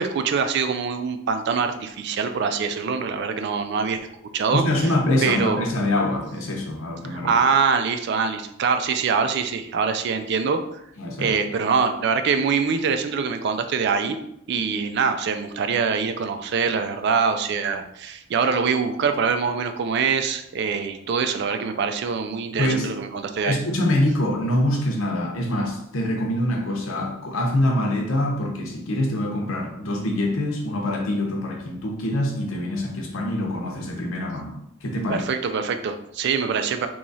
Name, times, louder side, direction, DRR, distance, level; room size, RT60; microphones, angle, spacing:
voice 1, 0.0-4.1 4.3-4.6 5.2-5.7 7.1-10.8 11.2-14.2 14.5-23.6 35.1-36.9, right 5 dB, 55° right, 8 dB, 0.3 m, -24 dB
voice 2, 4.5-7.3 11.0-11.4 22.6-22.9 23.4-35.3, left 1 dB, 90° left, 2 dB, 0.8 m, -25 dB
3.0 x 2.4 x 3.9 m, 0.77 s
head